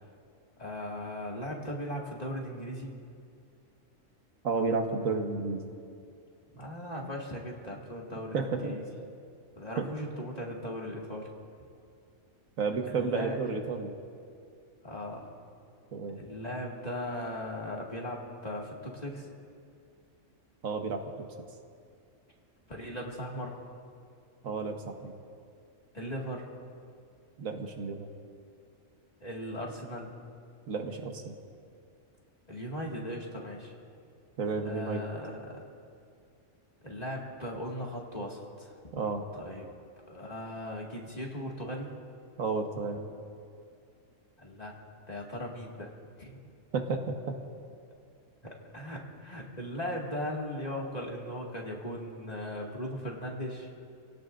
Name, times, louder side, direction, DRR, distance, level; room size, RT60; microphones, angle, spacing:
voice 1, 0.6-2.9 6.5-8.8 9.6-11.3 12.9-13.4 14.8-15.3 16.2-19.3 22.7-23.5 25.9-26.5 29.2-30.1 32.5-33.7 34.7-35.6 36.8-38.7 39.3-39.7 40.1-41.9 44.4-44.7 45.1-45.9 46.2-46.4 48.4-53.7, equal, 30° left, -2 dB, 2.1 m, -38 dB
voice 2, 4.4-5.7 8.3-8.7 9.8-9.9 12.6-13.9 15.9-16.2 20.6-21.1 24.4-25.1 27.4-28.1 30.7-31.3 34.4-35.0 38.9-39.2 42.4-43.1 46.7-47.1, right 4 dB, 85° right, 4 dB, 1.6 m, -31 dB
28.0 x 17.0 x 2.6 m, 2.3 s
omnidirectional pair, 1.4 m